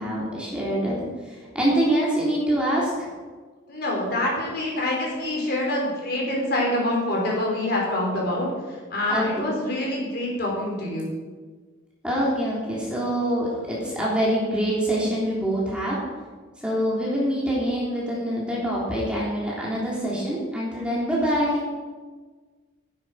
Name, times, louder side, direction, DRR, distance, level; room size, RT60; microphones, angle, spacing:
voice 1, 0.0-3.1 9.1-9.4 12.0-16.0 16.6-21.6, equal, 5° right, -6 dB, 3.3 m, -25 dB
voice 2, 3.7-11.1, left 1 dB, 55° left, -2 dB, 4.0 m, -26 dB
13.5 x 10.0 x 4.9 m, 1.4 s
head